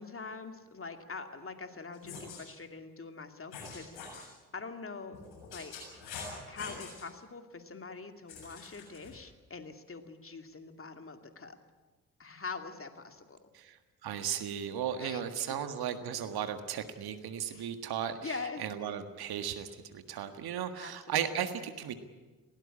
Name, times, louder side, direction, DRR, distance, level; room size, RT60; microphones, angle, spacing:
voice 1, 0.0-5.2 5.5-5.7 6.5-11.6 12.2-13.4 15.0-15.5 17.5-17.7 18.2-18.6 20.7-20.9 21.2-21.5, left 4 dB, 30° left, 6 dB, 2.5 m, -44 dB
sound 1, 1.9-2.4 3.5-4.3 5.1-7.0 8.3-9.1, left 4 dB, 75° left, 7.2 m, -45 dB
voice 2, 13.5-21.9, right 9 dB, 65° right, 9 dB, 1.7 m, -36 dB
20.0 x 18.0 x 9.8 m, 1.3 s
hypercardioid pair, 40°, 41 cm